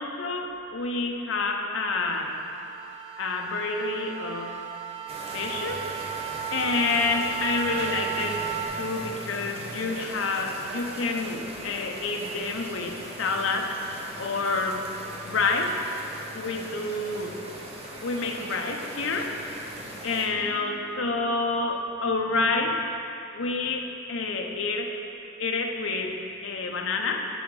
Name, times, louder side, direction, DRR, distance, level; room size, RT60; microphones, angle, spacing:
voice 1, 0.0-2.4 3.2-4.6 5.3-5.8 6.5-8.5 8.7-14.8 15.2-15.8 16.3-17.3 18.0-19.5 19.8-22.8 23.3-25.0 25.4-27.3, left 3 dB, 80° left, 2 dB, 0.7 m, -28 dB
sound 1, 1.9-8.7, right 10 dB, 65° right, 1.0 m, -35 dB
sound 2, 5.1-20.3, right 1 dB, 30° right, 1.0 m, -40 dB
7.9 x 4.9 x 5.2 m, 2.8 s
head